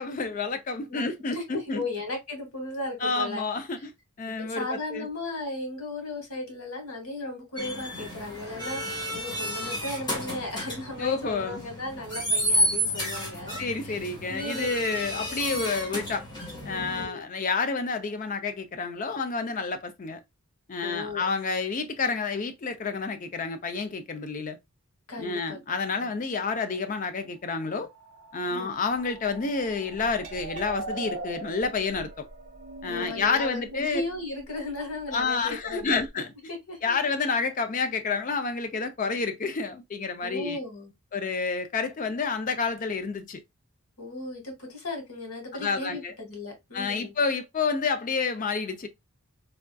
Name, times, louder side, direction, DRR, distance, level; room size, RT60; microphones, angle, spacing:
voice 1, 0.0-1.8 3.0-3.9 4.2-5.1 11.0-11.6 13.6-16.2 16.6-20.2 20.7-24.6 25.2-27.9 28.3-32.3 32.8-34.0 35.1-36.3 36.8-40.6 41.1-43.4 45.5-46.1 46.7-48.9, left 4 dB, 35° left, 0.4 m, -29 dB
voice 2, 0.9-3.4 4.3-14.0 14.3-14.6 15.3-15.7 16.7-17.2 20.8-21.3 25.1-25.6 26.0-26.1 28.4-28.8 32.9-36.0 36.5-36.9 40.2-40.9 44.0-47.1, left 2 dB, 75° left, 1.5 m, -36 dB
sound 1, 7.6-17.0, equal, 20° left, 1.3 m, -31 dB
sound 2, 27.7-33.5, right 3 dB, 65° right, 1.1 m, -41 dB
Glass, 30.1-36.1, right 1 dB, 35° right, 1.1 m, -48 dB
3.5 x 2.5 x 2.2 m
head